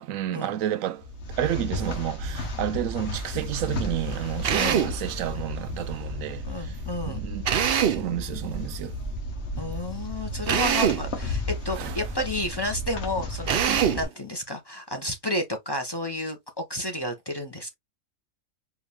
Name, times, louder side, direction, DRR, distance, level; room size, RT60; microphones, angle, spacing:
voice 1, 0.0-6.8 7.1-9.0 11.7-12.0 13.7-13.8, right 12 dB, 80° right, 1.0 m, -31 dB
sound 1, 1.0-14.0, left 1 dB, 55° left, 1.5 m, -33 dB
Drill, 4.4-5.0 7.5-8.1 10.5-11.1 13.5-14.1, right 9 dB, 55° right, 0.8 m, -23 dB
voice 2, 4.6-4.9 6.4-7.2 9.6-17.7, left 1 dB, 20° left, 0.9 m, -31 dB
4.7 x 2.7 x 3.4 m
omnidirectional pair, 1.4 m